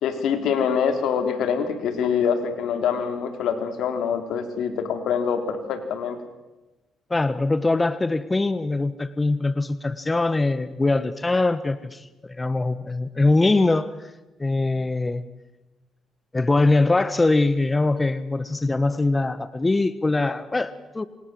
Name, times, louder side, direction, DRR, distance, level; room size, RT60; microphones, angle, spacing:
voice 1, 0.0-6.2, left 7 dB, 80° left, 7 dB, 4.1 m, -25 dB
voice 2, 7.1-12.1 12.4-13.9 14.4-15.2 16.3-21.1, left 2 dB, 20° left, 14 dB, 1.4 m, -22 dB
27.5 x 27.0 x 7.9 m, 1.1 s
cardioid pair, 90°, 0 cm